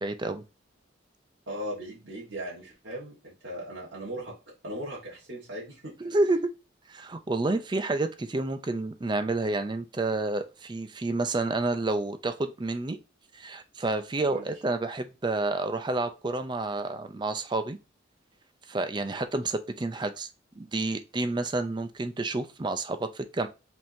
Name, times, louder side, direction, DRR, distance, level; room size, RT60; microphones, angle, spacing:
voice 1, 0.0-0.4 6.0-6.5 6.9-13.0 13.3-17.8 18.7-20.3 20.6-23.5, right 2 dB, 25° right, 9 dB, 0.4 m, -29 dB
voice 2, 1.5-4.3 4.6-5.9 14.2-14.5, equal, 65° right, -5 dB, 1.5 m, -38 dB
5.5 x 3.6 x 2.7 m, 0.29 s
head